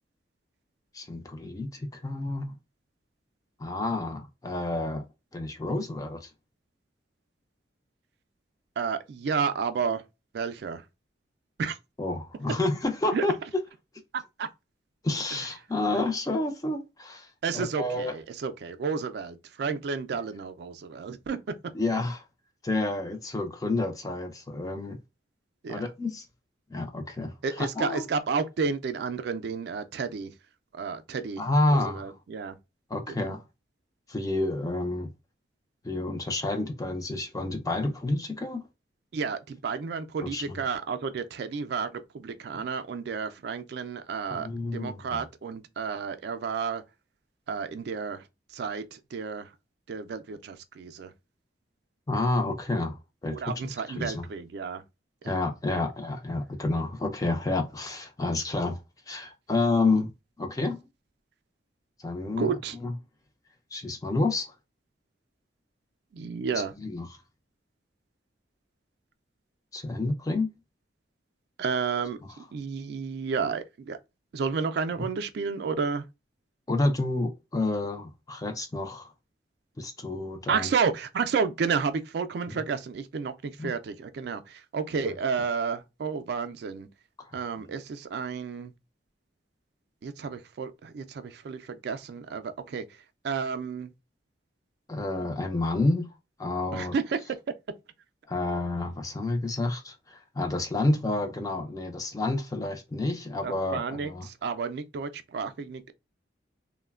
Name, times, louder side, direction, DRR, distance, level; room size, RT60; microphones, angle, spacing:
voice 1, 0.9-2.5 3.6-5.0 5.3-6.3 12.0-13.3 15.0-17.3 17.5-18.2 21.7-22.2 22.6-25.0 25.7-26.2 26.7-28.1 31.4-32.1 32.9-33.4 34.1-35.1 35.8-38.6 40.2-40.6 44.3-45.2 52.1-53.4 54.0-54.2 55.2-58.8 59.1-60.1 60.4-60.8 62.0-62.5 62.8-62.9 63.7-64.5 66.8-67.1 69.7-70.5 76.7-79.1 79.8-80.7 82.5-82.6 83.6-83.7 94.9-96.1 96.4-96.9 98.3-104.3, left 2 dB, 20° left, 0.4 m, -29 dB
voice 2, 8.8-10.0 10.3-10.8 11.6-11.8 13.1-13.3 14.4-14.5 17.4-21.4 25.6-25.9 27.4-30.3 30.7-31.4 31.7-32.6 33.1-33.3 39.1-46.8 47.5-48.2 48.5-49.5 49.9-51.1 53.3-54.8 55.2-55.4 62.4-62.8 66.1-66.7 71.6-74.0 74.3-76.0 80.5-86.9 87.3-88.7 90.0-92.9 93.2-93.9 96.7-97.2 103.4-105.9, right 5 dB, 60° right, 0.3 m, -31 dB
3.0 x 2.1 x 2.3 m
head